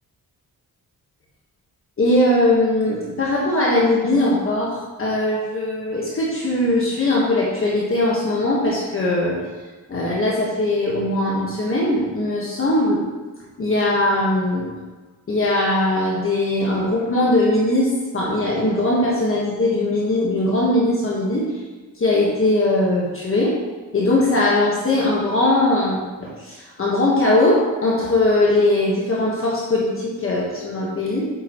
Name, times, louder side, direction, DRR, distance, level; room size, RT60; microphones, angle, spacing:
voice 1, 2.0-9.4 9.9-13.0 13.6-14.7 15.3-21.5 22.0-23.6 23.9-31.2, left 1 dB, 35° left, -5 dB, 1.4 m, -20 dB
8.6 x 8.1 x 3.0 m, 1.3 s
wide cardioid pair, 160°, 37 cm